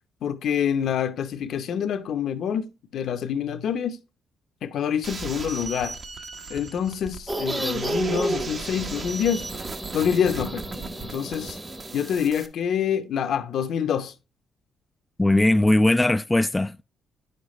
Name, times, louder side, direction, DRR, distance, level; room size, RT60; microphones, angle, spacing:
voice 1, 0.2-4.0 4.6-6.0 6.5-9.5 9.9-11.6 11.9-14.1, left 8 dB, 70° left, 0.7 m, -26 dB
sound 1, 5.0-12.5, right 4 dB, 45° right, 1.0 m, -37 dB
sound 2, 7.3-12.2, right 1 dB, 15° right, 0.9 m, -32 dB
voice 2, 15.2-16.8, left 1 dB, 10° left, 0.3 m, -19 dB
9.4 x 6.7 x 3.1 m
cardioid pair, 85°, 0 cm